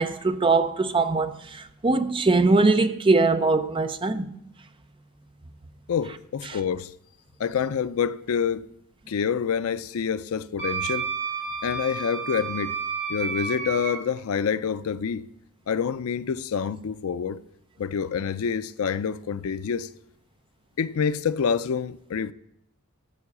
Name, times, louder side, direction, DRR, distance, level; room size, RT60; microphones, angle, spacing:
voice 1, 0.0-4.3, right 3 dB, 25° right, 0.6 m, -22 dB
voice 2, 5.9-6.9 7.4-8.7 9.1-11.1 11.6-12.8 13.1-15.3 15.7-17.4 17.8-19.9 20.8-22.3, left 6 dB, 75° left, 0.4 m, -27 dB
Wind instrument woodwind instrument, 10.6-14.0, right 5 dB, 55° right, 5.4 m, -31 dB
13.5 x 4.7 x 8.3 m
head